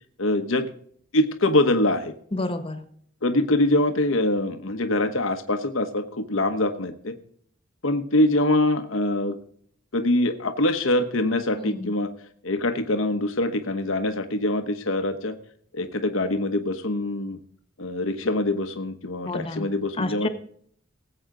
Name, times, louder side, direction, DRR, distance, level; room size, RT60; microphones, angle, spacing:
voice 1, 0.2-0.7 1.1-2.1 3.2-7.1 7.8-9.4 9.9-12.1 12.4-15.4 15.7-17.4 17.8-20.3, left 1 dB, 80° left, 7 dB, 1.1 m, -24 dB
voice 2, 2.3-2.8 11.5-11.9 19.2-19.7 20.0-20.3, left 2 dB, 30° left, 9 dB, 1.3 m, -30 dB
19.5 x 7.9 x 3.8 m, 0.62 s
head